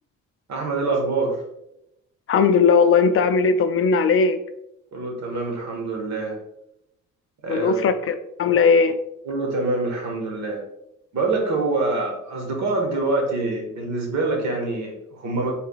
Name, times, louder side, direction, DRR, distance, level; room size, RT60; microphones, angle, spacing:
voice 1, 0.5-1.4 4.9-6.4 7.4-7.9 9.2-10.6 11.1-15.5, right 3 dB, 65° right, 1 dB, 1.3 m, -25 dB
voice 2, 2.3-4.4 7.5-9.0, left 5 dB, 45° left, 8 dB, 0.4 m, -18 dB
4.7 x 3.4 x 2.3 m, 0.83 s
cardioid pair, 90°, 30 cm